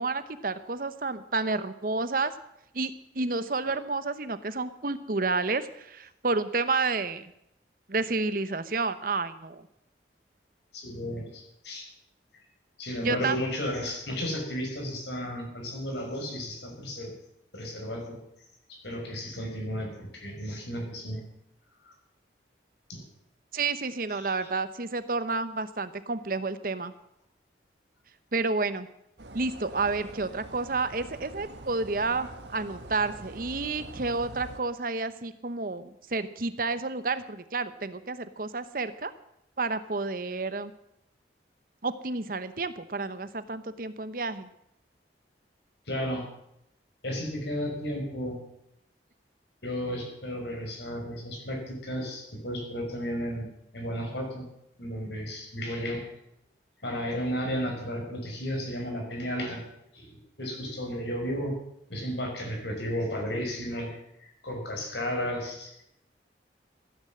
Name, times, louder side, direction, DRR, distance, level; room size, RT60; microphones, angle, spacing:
voice 1, 0.0-2.3 2.7-7.3 7.9-9.6 13.0-13.4 23.5-26.9 28.3-28.9 29.3-39.1 39.6-40.7 41.8-44.5, right 3 dB, 50° right, 13 dB, 0.9 m, -30 dB
voice 2, 10.7-11.9 12.8-17.1 17.5-18.2 18.7-21.2 22.9-23.0 24.1-24.5 45.9-46.2 47.0-48.4 49.6-53.4 53.7-54.4 54.8-56.0 56.8-59.6 59.9-61.5 61.9-65.7, equal, 75° left, 1 dB, 5.9 m, -33 dB
sound 1, 29.2-34.6, right 2 dB, 75° right, 1.5 m, -44 dB
15.5 x 10.0 x 7.7 m, 0.79 s
head